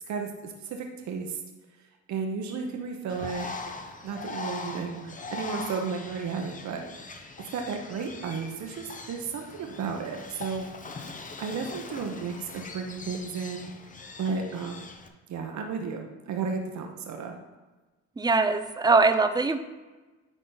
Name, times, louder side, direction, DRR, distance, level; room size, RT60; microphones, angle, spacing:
voice 1, 0.1-1.4 2.1-3.5 4.0-7.2 7.5-10.7 11.4-13.7 14.2-14.9 15.3-17.3, right 5 dB, 65° right, 3 dB, 0.9 m, -33 dB
Bird, 3.1-15.1, left 4 dB, 25° left, 0.8 m, -41 dB
voice 2, 18.2-19.6, right 3 dB, 15° right, 10 dB, 0.5 m, -22 dB
10.0 x 4.0 x 3.9 m, 1.2 s
cardioid pair, 90°, 30 cm